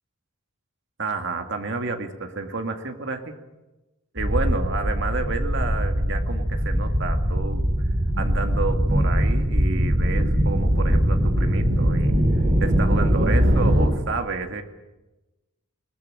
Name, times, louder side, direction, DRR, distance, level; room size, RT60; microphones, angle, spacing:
voice 1, 1.0-3.3 4.1-7.7 8.2-12.1 12.6-14.6, right 3 dB, 55° right, 5 dB, 2.2 m, -30 dB
sound 1, 4.2-13.9, equal, 35° right, 6.0 m, -21 dB
21.5 x 20.0 x 8.8 m, 1.0 s
head